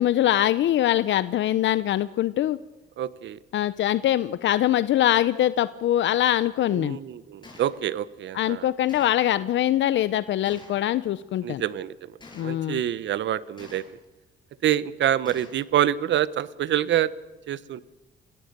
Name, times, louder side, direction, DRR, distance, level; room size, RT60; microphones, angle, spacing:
voice 1, 0.0-2.6 3.5-7.0 8.3-11.6 12.4-12.8, left 12 dB, 70° left, 15 dB, 0.6 m, -23 dB
voice 2, 3.0-3.4 6.7-8.7 11.4-12.1 12.4-13.8 14.6-17.1 17.5-17.8, right 11 dB, 65° right, 18 dB, 0.9 m, -26 dB
Gunshot gunfire, 7.4-7.8 8.9-9.3 10.5-10.8 12.2-12.6 13.6-14.1 15.3-15.7, left 2 dB, 20° left, 6.9 m, -47 dB
26.5 x 17.0 x 6.7 m, 1.1 s
cardioid pair, 90°, 20 cm